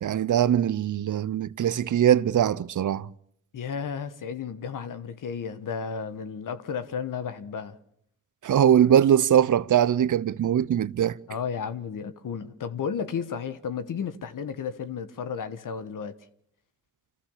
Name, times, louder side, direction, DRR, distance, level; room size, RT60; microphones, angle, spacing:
voice 1, 0.0-3.1 8.4-11.2, right 10 dB, 70° right, 0.8 m, -21 dB
voice 2, 3.5-7.8 11.3-16.1, left 6 dB, 80° left, 1.5 m, -33 dB
26.5 x 15.0 x 7.3 m
cardioid pair, 50°, 32 cm